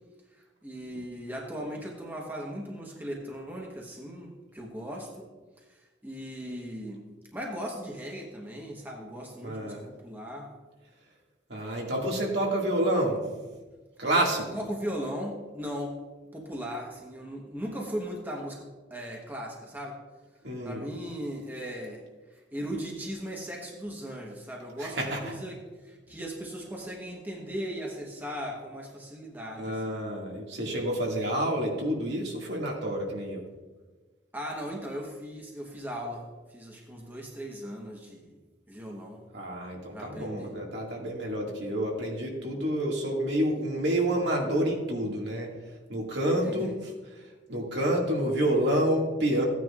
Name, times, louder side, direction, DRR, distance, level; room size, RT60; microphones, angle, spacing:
voice 1, 0.3-5.3 5.6-7.0 7.3-10.5 14.5-16.0 16.3-20.0 20.6-22.0 22.3-25.6 25.8-30.0 34.3-38.4 38.7-39.2 39.9-40.5 46.4-46.8, equal, 10° right, -1 dB, 1.1 m, -38 dB
voice 2, 9.4-9.9 11.5-13.2 14.0-14.6 20.4-20.8 24.8-25.2 29.6-33.4 39.3-45.5 45.9-46.9 47.5-49.5, right 1 dB, 65° right, -1 dB, 2.0 m, -28 dB
15.0 x 9.3 x 2.4 m, 1.3 s
head